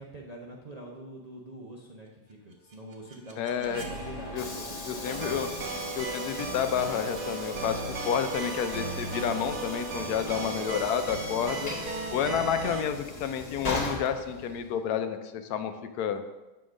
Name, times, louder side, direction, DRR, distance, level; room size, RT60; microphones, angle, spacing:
voice 1, 0.0-5.4 10.2-11.7 12.2-12.8, right 1 dB, 45° right, -3 dB, 0.5 m, -46 dB
sound 1, 2.3-8.2, equal, 90° right, 1.6 m, -46 dB
voice 2, 3.4-3.8 4.3-4.5 4.9-5.5 6.0-11.7 12.1-16.2, left 8 dB, 75° left, 9 dB, 1.1 m, -30 dB
Train / Sliding door, 3.4-14.9, left 1 dB, 30° left, 0.9 m, -40 dB
sound 2, 5.0-12.8, right 3 dB, 75° right, 1.4 m, -36 dB
6.8 x 3.8 x 6.2 m, 1.1 s
omnidirectional pair, 1.7 m